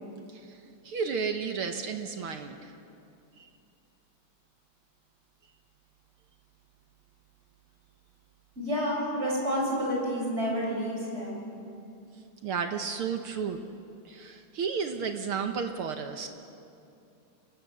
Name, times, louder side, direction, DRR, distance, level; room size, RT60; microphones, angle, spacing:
voice 1, 0.8-2.7 3.4-3.5 12.4-13.6 14.0-16.3, right 6 dB, 65° right, 6 dB, 1.4 m, -32 dB
voice 2, 8.6-11.4, equal, 20° right, -3 dB, 6.7 m, -29 dB
27.5 x 19.0 x 7.4 m, 2.6 s
omnidirectional pair, 3.6 m